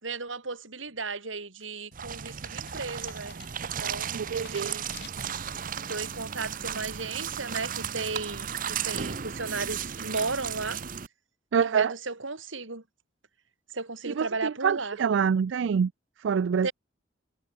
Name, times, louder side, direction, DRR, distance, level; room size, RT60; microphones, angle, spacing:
voice 1, 0.0-3.3 3.6-4.9 5.9-10.8 11.6-12.8 13.7-15.0 16.6-16.7, right 3 dB, 85° right, 4.1 m, -35 dB
sound 1, 1.6-5.8 6.3-6.7, left 8 dB, 60° left, 4.3 m, -51 dB
sound 2, 1.9-11.1, right 8 dB, 45° right, 0.7 m, -35 dB
voice 2, 4.1-4.8 11.5-11.9 14.1-15.9 16.2-16.7, right 6 dB, 70° right, 0.4 m, -26 dB
head